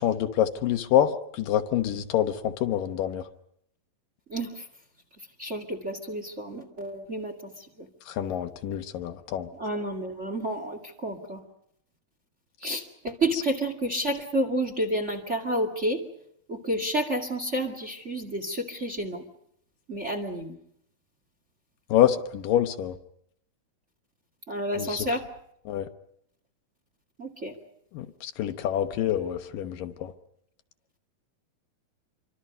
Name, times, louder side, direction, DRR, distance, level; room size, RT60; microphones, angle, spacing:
voice 1, 0.0-3.2 8.1-9.5 21.9-23.0 24.8-25.1 25.7-25.9 27.9-30.1, left 11 dB, 75° left, 8 dB, 2.6 m, -26 dB
voice 2, 4.3-4.7 5.4-7.9 9.5-11.4 12.6-16.0 16.5-19.2 19.9-20.6 24.5-25.3 27.2-27.5, right 1 dB, 25° right, 5 dB, 1.9 m, -30 dB
27.5 x 25.0 x 5.4 m, 0.71 s
omnidirectional pair, 4.1 m